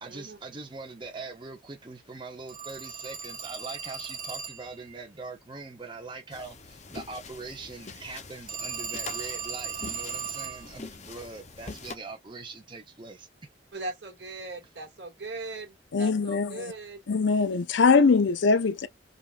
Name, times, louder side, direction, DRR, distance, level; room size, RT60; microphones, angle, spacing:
voice 1, 0.0-13.3, right 3 dB, 25° right, 0.8 m, -42 dB
Telephone, 2.5-4.8 8.5-10.7, right 6 dB, 45° right, 1.2 m, -37 dB
sound 1, 6.3-12.0, left 3 dB, 40° left, 0.7 m, -44 dB
voice 2, 13.7-17.0, right 2 dB, 60° right, 2.1 m, -39 dB
voice 3, 15.9-16.7 17.1-18.9, left 4 dB, 75° left, 0.5 m, -22 dB
5.2 x 2.5 x 2.4 m
head